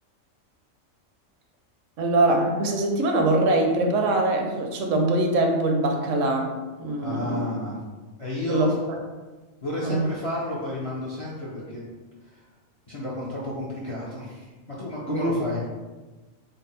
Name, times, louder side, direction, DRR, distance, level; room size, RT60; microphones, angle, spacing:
voice 1, 2.0-6.5 6.8-7.5 8.5-9.0 9.8-10.1 15.1-15.3, right 2 dB, 75° right, 3 dB, 0.9 m, -23 dB
voice 2, 7.0-7.8 8.2-8.7 9.6-11.8 12.3-12.4 12.9-15.6, left 1 dB, 45° left, -5 dB, 0.4 m, -31 dB
4.0 x 2.0 x 3.9 m, 1.2 s
omnidirectional pair, 1.4 m